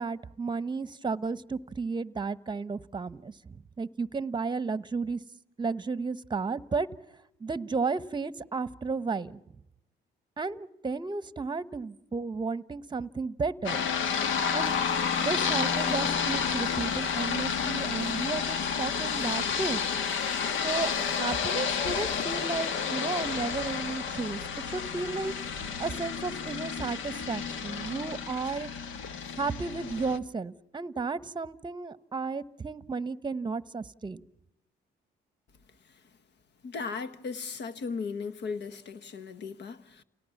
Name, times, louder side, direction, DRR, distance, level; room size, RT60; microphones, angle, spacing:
voice 1, 0.0-5.2 5.6-6.9 7.4-9.4 10.4-13.8 14.5-14.7 15.2-19.8 20.6-24.4 24.7-25.3 25.8-28.7 29.4-34.2, right 4 dB, 20° right, 1.0 m, -33 dB
sound 1, 13.6-30.2, left 6 dB, 80° left, 1.4 m, -30 dB
voice 2, 36.6-40.0, left 5 dB, 60° left, 1.4 m, -36 dB
29.5 x 18.0 x 7.1 m
cardioid pair, 90°, 20 cm